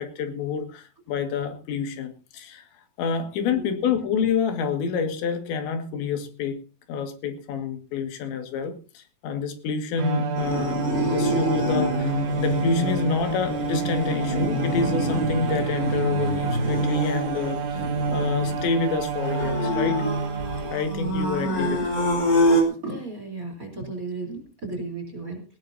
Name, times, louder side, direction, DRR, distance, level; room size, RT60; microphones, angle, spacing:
voice 1, 0.0-2.7 3.0-6.6 6.9-17.8 18.1-20.1 20.7-21.8 22.5-22.6, left 5 dB, 85° left, 6 dB, 4.2 m, -28 dB
voice 2, 3.4-3.8 21.4-21.9 22.8-25.4, right 3 dB, 20° right, 3 dB, 3.4 m, -35 dB
Bowed string instrument, 10.0-21.2, right 4 dB, 65° right, 2.2 m, -28 dB
sound 1, 10.3-22.6, equal, 20° left, 4.9 m, -27 dB
18.5 x 18.0 x 2.7 m, 0.34 s
omnidirectional pair, 5.0 m